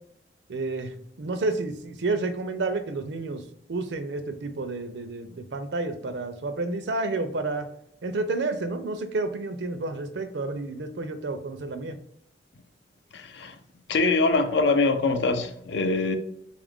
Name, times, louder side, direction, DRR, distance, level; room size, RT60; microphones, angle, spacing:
voice 1, 0.5-0.9 1.2-3.4 3.7-7.7 8.0-12.0, right 3 dB, 75° right, 0.5 m, -30 dB
voice 2, 13.1-13.5 13.9-16.2, left 3 dB, 75° left, 0.5 m, -23 dB
3.6 x 2.4 x 3.5 m
head